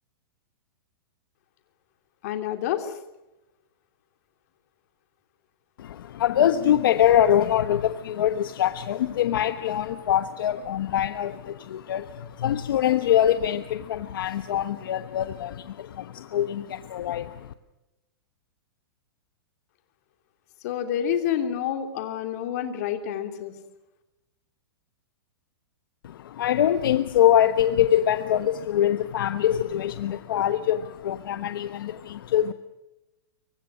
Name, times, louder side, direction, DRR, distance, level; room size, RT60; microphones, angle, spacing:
voice 1, 2.2-3.0 20.6-23.5, left 9 dB, 40° left, 6 dB, 3.0 m, -28 dB
voice 2, 5.8-17.5 26.0-32.5, left 11 dB, 65° left, 10 dB, 1.2 m, -24 dB
26.5 x 24.0 x 6.3 m, 0.95 s
supercardioid pair, 175°, 13 cm